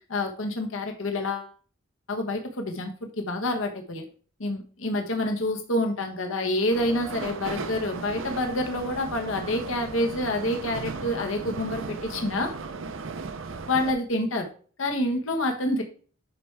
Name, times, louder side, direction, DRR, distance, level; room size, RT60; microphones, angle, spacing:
voice 1, 0.1-1.5 2.1-4.0 4.4-12.5 13.7-14.5 14.8-15.8, left 1 dB, 70° left, 4 dB, 1.2 m, -28 dB
sound 1, 6.7-13.9, right 4 dB, 70° right, 0.7 m, -36 dB
11.0 x 4.6 x 3.3 m, 0.41 s
head